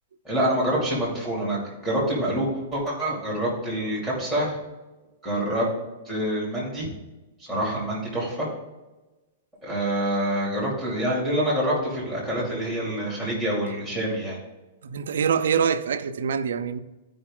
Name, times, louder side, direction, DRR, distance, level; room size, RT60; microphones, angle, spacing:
voice 1, 0.2-4.6 5.2-5.7 6.0-6.9 7.5-8.5 9.6-14.4, right 1 dB, 10° left, 2.6 m, -26 dB
voice 2, 14.8-16.8, right 7 dB, 75° right, 0.6 m, -24 dB
12.0 x 5.3 x 3.7 m
hypercardioid pair, 180°, 0 cm